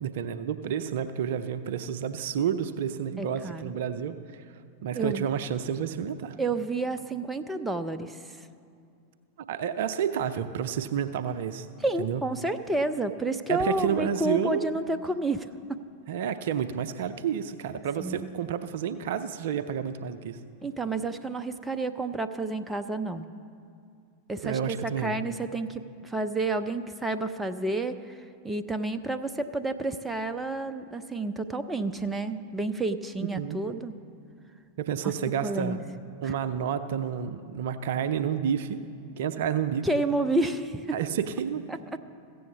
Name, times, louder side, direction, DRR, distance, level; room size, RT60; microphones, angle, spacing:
voice 1, 0.0-4.4 4.8-6.3 9.5-11.7 12.0-12.2 13.5-14.7 16.1-20.4 24.4-25.1 33.2-33.6 34.8-35.8 36.2-38.8 39.2-39.9 40.9-41.6, right 8 dB, 55° right, 11 dB, 0.5 m, -30 dB
voice 2, 3.2-3.7 4.9-5.3 6.4-8.5 11.8-15.8 18.0-18.3 20.6-23.3 24.3-33.9 35.4-35.8 36.2-36.3 39.8-41.0 41.7-41.8, right 2 dB, 10° right, 9 dB, 0.5 m, -30 dB
15.0 x 7.8 x 7.0 m, 2.4 s
figure-of-eight pair, 90°, 0 cm